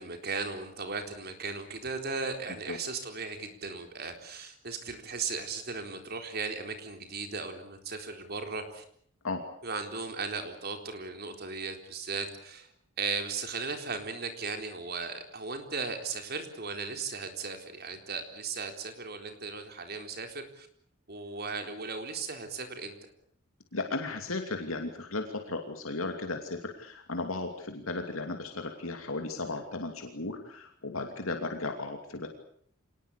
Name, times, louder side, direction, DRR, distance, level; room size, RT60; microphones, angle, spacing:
voice 1, 0.0-8.8 9.6-12.7 13.0-20.7 21.1-22.9, right 4 dB, 50° right, 6 dB, 4.1 m, -37 dB
voice 2, 23.7-32.3, left 3 dB, 80° left, 5 dB, 2.8 m, -35 dB
26.5 x 19.5 x 8.4 m, 0.64 s
head